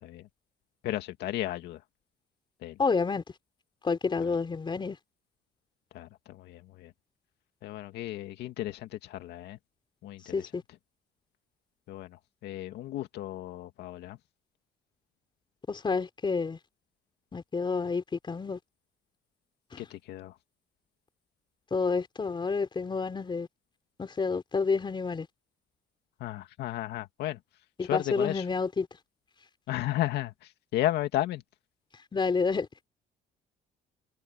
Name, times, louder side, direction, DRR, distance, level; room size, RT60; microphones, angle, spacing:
voice 1, 0.8-1.8 2.6-2.8 4.2-4.4 5.9-6.9 7.6-9.6 10.0-10.4 11.9-14.2 19.8-20.4 26.2-27.4 27.8-28.5 29.7-31.4, left 14 dB, 80° left, 2.2 m, -34 dB
voice 2, 2.8-3.2 3.8-5.0 10.3-10.6 15.7-16.6 17.3-18.6 19.7-19.8 21.7-23.5 24.0-25.3 27.8-28.9 32.1-32.9, left 4 dB, 30° left, 4.5 m, -29 dB
cardioid pair, 110°, 17 cm